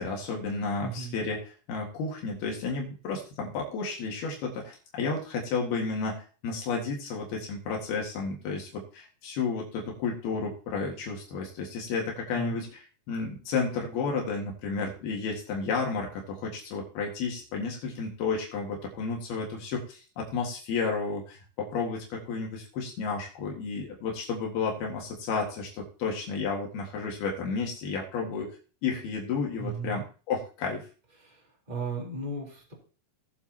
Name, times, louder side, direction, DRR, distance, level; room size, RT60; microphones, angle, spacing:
voice 1, 0.0-1.4 1.7-28.5 28.8-30.9, left 4 dB, 75° left, 0 dB, 3.8 m, -32 dB
voice 2, 0.8-1.2 12.3-12.6 29.6-30.0 31.2-32.7, right 3 dB, 10° right, -2 dB, 3.4 m, -36 dB
19.0 x 7.5 x 2.9 m, 0.37 s
omnidirectional pair, 4.5 m